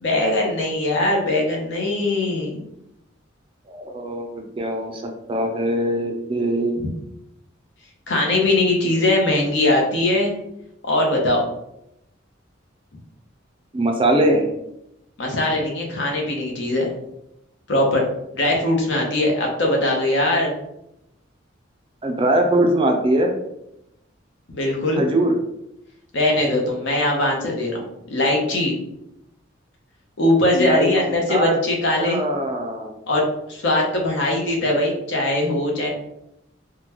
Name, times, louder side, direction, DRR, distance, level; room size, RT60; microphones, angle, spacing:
voice 1, 0.0-2.6 8.1-10.3 10.8-11.4 15.2-16.9 17.7-18.0 18.3-20.5 24.5-25.1 26.1-28.8 30.2-32.2 33.1-35.9, left 1 dB, 65° left, 0 dB, 0.8 m, -21 dB
voice 2, 3.7-5.0 5.3-6.9 13.7-14.5 22.0-23.4 25.0-25.3 30.5-30.9 31.3-31.6 32.0-32.9, right 1 dB, 25° right, 3 dB, 0.4 m, -21 dB
3.7 x 2.2 x 2.9 m, 0.81 s
head